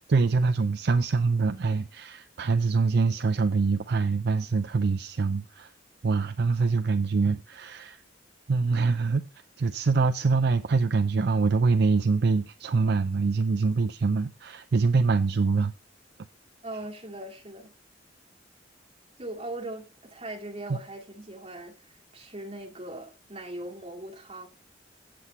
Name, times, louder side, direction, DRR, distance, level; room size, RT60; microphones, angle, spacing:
voice 1, 0.1-5.7 6.0-8.0 8.5-9.2 9.6-15.7, right 4 dB, 60° right, 0.5 m, -24 dB
voice 2, 16.6-17.7 19.2-24.5, right 1 dB, 30° right, 2.1 m, -40 dB
8.1 x 7.7 x 4.2 m
head